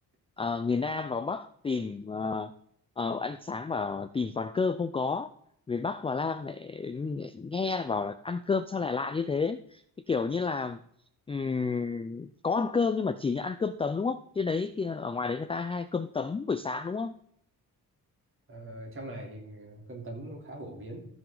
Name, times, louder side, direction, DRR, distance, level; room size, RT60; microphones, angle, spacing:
voice 1, 0.4-2.5 3.0-5.3 5.7-10.8 11.3-17.1, left 4 dB, 15° left, 11 dB, 0.3 m, -31 dB
voice 2, 18.5-21.1, right 1 dB, 35° right, 1 dB, 3.3 m, -42 dB
13.5 x 7.2 x 3.8 m, 0.68 s
wide cardioid pair, 155°, 36 cm